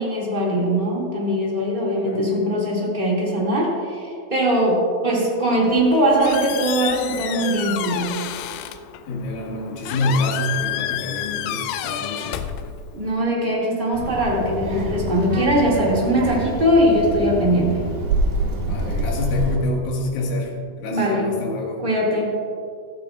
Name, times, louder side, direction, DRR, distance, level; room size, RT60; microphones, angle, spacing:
voice 1, 0.0-8.2 12.9-17.8 20.9-21.3 21.8-22.4, equal, 25° right, -4 dB, 1.0 m, -21 dB
Squeak, 5.7-13.2, left 12 dB, 90° left, 2.7 m, -30 dB
voice 2, 9.1-12.4 18.6-21.8, left 1 dB, 65° left, -2 dB, 3.3 m, -27 dB
Child speech kid speaking, 13.9-19.5, right 2 dB, 70° right, 3.8 m, -26 dB
14.5 x 14.5 x 2.4 m, 2.3 s
omnidirectional pair, 4.8 m